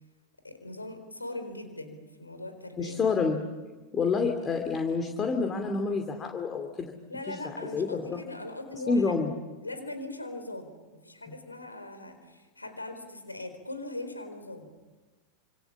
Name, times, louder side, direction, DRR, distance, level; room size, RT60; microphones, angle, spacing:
voice 1, 0.4-3.0 7.1-9.2 9.6-14.7, left 2 dB, 80° left, 8 dB, 4.3 m, -40 dB
voice 2, 2.8-3.4 3.9-6.9 7.3-8.0 8.9-9.3 11.3-11.4, left 4 dB, 25° left, 5 dB, 2.6 m, -28 dB
28.0 x 27.0 x 7.4 m, 1.3 s
figure-of-eight pair, 90°, 0 cm